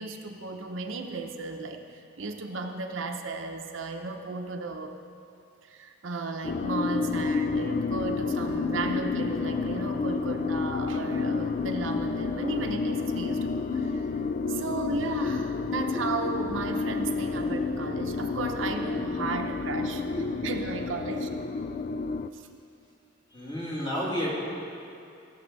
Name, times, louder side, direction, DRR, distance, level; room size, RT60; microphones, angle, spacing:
voice 1, 0.0-4.9 5.6-14.2 14.5-20.0 20.4-21.3 22.3-22.5, right 3 dB, 75° right, 4 dB, 0.8 m, -35 dB
sound 1, 6.4-22.3, left 4 dB, 40° left, 0.3 m, -30 dB
voice 2, 16.8-17.7 18.9-19.2 19.5-19.8 20.1-21.8 23.3-24.3, equal, 25° left, -6 dB, 2.4 m, -36 dB
16.5 x 7.2 x 4.0 m, 2.6 s
head